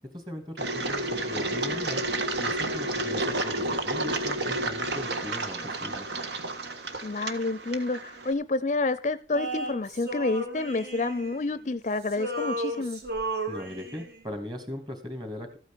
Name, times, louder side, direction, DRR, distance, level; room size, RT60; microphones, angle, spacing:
voice 1, 0.1-2.0 2.4-6.1 13.5-15.6, left 1 dB, 25° right, 6 dB, 2.7 m, -39 dB
Engine, 0.6-8.3, right 2 dB, 75° right, 1.6 m, -31 dB
voice 2, 7.0-13.0, left 3 dB, 40° left, 16 dB, 0.5 m, -29 dB
Male singing, 9.3-11.8 12.1-14.2, right 1 dB, 60° right, 3.2 m, -34 dB
14.0 x 9.0 x 5.2 m, 0.36 s
head